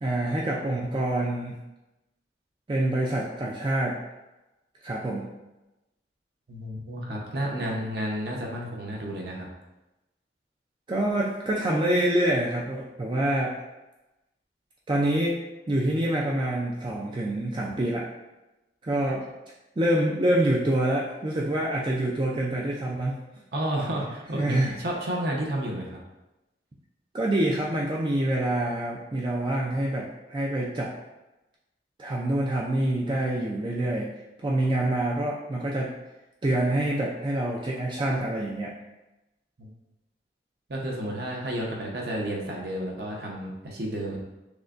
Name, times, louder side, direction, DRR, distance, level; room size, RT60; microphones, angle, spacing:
voice 1, 0.0-1.6 2.7-4.0 4.8-5.3 10.9-13.6 14.9-15.4 15.7-18.1 18.8-19.2 19.8-23.2 24.3-24.8 27.1-30.9 32.0-34.1 34.4-35.9 36.4-38.7, right 1 dB, 25° right, -3 dB, 0.4 m, -26 dB
voice 2, 6.5-9.5 23.5-26.0 39.6-39.7 40.7-44.2, right 1 dB, 60° right, -1 dB, 0.8 m, -31 dB
6.1 x 2.2 x 2.5 m, 0.99 s
head